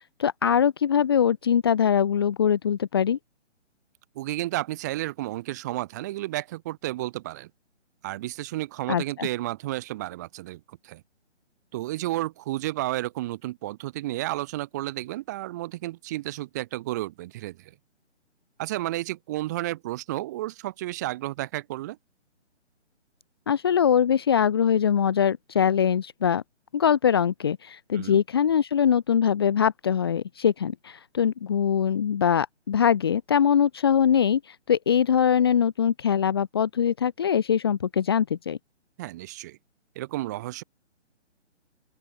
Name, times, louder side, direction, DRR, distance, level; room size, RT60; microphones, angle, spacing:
voice 1, 0.2-3.2 8.9-9.3 23.5-26.4 26.7-38.6, left 8 dB, 20° left, 1.7 m, -22 dB
voice 2, 4.2-7.5 8.0-11.0 11.7-17.7 18.6-22.0 27.9-28.2 39.0-39.6 40.0-40.6, right 16 dB, 15° right, 3.5 m, -32 dB
open air
hypercardioid pair, 180°, 36 cm